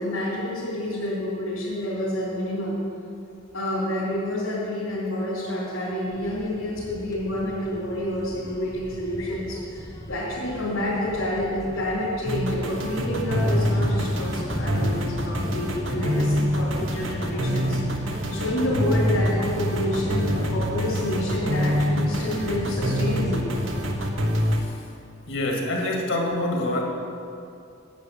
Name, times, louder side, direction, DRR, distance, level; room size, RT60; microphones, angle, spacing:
voice 1, 0.0-2.8 3.5-23.5, left 1 dB, 85° left, -9 dB, 3.4 m, -29 dB
sound 1, 6.1-24.1, equal, 15° left, 0.8 m, -32 dB
sound 2, 12.3-24.6, equal, 65° right, 1.2 m, -26 dB
voice 2, 25.3-26.8, left 1 dB, 60° left, 0 dB, 1.9 m, -25 dB
10.5 x 8.7 x 7.0 m, 2.5 s
head